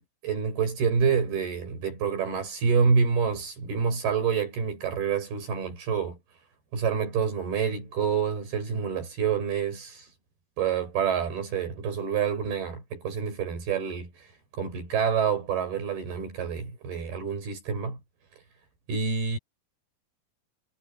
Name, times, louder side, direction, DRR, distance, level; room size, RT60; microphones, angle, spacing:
voice 1, 0.0-6.2 6.7-10.1 10.6-14.3 14.5-18.0 18.9-19.4, right 6 dB, 90° right, 7.9 m, -27 dB
omnidirectional pair, 4.3 m